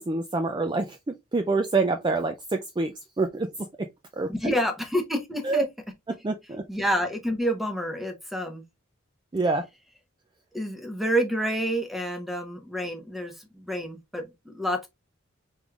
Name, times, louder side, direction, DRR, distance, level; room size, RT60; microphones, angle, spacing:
voice 1, 0.0-3.5 3.8-3.9 4.2-4.3 5.4-5.7 6.1-6.6 9.3-9.7, right 3 dB, 20° right, 0.3 m, -26 dB
voice 2, 4.3-5.7 6.7-8.6 10.5-14.9, equal, ahead, 1.0 m, -28 dB
4.6 x 3.6 x 2.4 m
head